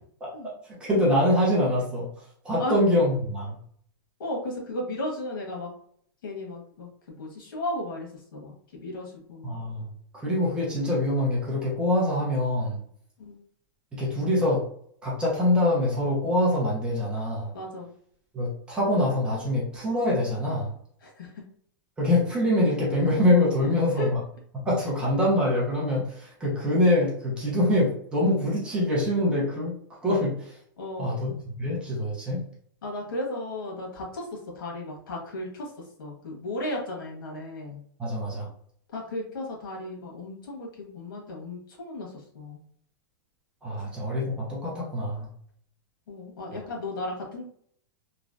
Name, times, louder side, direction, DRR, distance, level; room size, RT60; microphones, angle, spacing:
voice 1, 0.2-2.1 2.4-3.6 9.4-9.9 10.1-12.8 13.9-14.6 15.0-17.5 18.3-20.7 22.0-24.2 24.6-29.7 30.0-30.6 31.0-32.4 38.0-38.5 43.6-45.3, left 1 dB, 10° right, -5 dB, 0.7 m, -24 dB
voice 2, 4.2-5.7 6.2-9.6 13.2-13.4 17.5-17.9 21.0-21.4 23.6-24.1 30.8-31.2 32.8-37.8 38.9-42.6 46.1-47.5, left 1 dB, 85° left, -1 dB, 1.4 m, -35 dB
3.2 x 2.4 x 2.5 m, 0.63 s
supercardioid pair, 175°, 11 cm